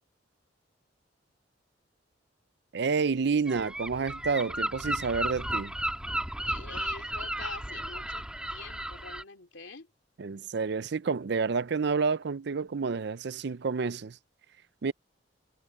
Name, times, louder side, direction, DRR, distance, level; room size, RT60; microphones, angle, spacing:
voice 1, 2.7-5.7 10.2-14.2 14.8-14.9, right 5 dB, 65° right, 0.5 m, -29 dB
Gull seagull, 3.5-9.2, right 1 dB, 5° right, 1.7 m, -34 dB
voice 2, 6.4-9.9, left 5 dB, 85° left, 2.6 m, -46 dB
head